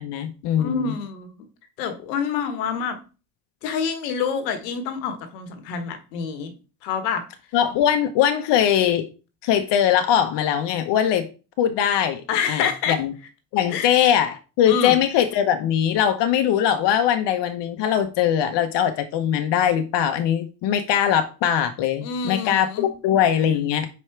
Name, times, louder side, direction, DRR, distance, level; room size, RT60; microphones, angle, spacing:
voice 1, 0.0-0.9 7.5-9.1 9.4-11.3 11.6-13.1 13.5-23.9, left 9 dB, 60° left, 1.0 m, -21 dB
voice 2, 0.6-1.3 1.8-3.0 3.6-6.5 6.8-7.2 12.3-13.0 13.7-13.9 14.7-15.0 22.0-22.9, left 6 dB, 85° left, 1.4 m, -27 dB
5.3 x 5.0 x 4.5 m
hypercardioid pair, 70°, 47 cm